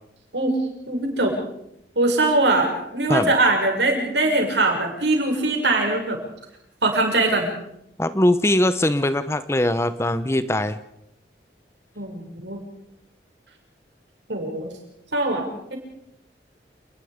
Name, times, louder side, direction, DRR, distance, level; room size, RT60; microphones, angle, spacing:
voice 1, 0.9-1.3 1.9-6.2 6.8-7.5 12.0-12.6 14.3-14.7 15.1-15.4 15.7-15.8, right 2 dB, 85° right, 2 dB, 6.5 m, -21 dB
voice 2, 8.0-10.8, left 1 dB, 15° left, 13 dB, 0.8 m, -21 dB
29.0 x 20.0 x 5.2 m, 0.78 s
head